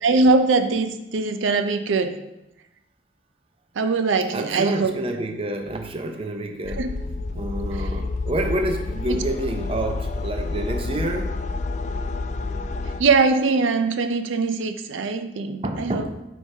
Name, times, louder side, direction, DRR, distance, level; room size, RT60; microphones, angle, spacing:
voice 1, 0.0-2.2 3.8-4.9 6.8-6.9 9.1-9.2 13.0-16.1, right 3 dB, 90° right, 7 dB, 0.5 m, -21 dB
voice 2, 4.3-6.9 7.3-11.4 15.6-16.2, right 1 dB, 30° right, 5 dB, 0.6 m, -28 dB
sound 1, 6.6-13.0, left 3 dB, 40° left, 0.3 m, -29 dB
9.0 x 4.6 x 2.8 m, 0.92 s
head